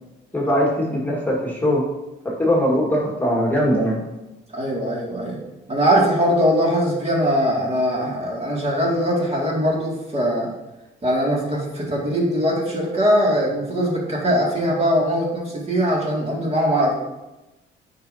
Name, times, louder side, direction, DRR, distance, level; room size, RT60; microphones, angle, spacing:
voice 1, 0.3-1.8 2.2-4.0, equal, 10° left, -4 dB, 1.6 m, -20 dB
voice 2, 4.5-5.4 5.7-10.5 11.0-16.9, equal, 30° right, -3 dB, 2.1 m, -21 dB
8.8 x 5.2 x 2.7 m, 1.0 s
cardioid pair, 90°, 20 cm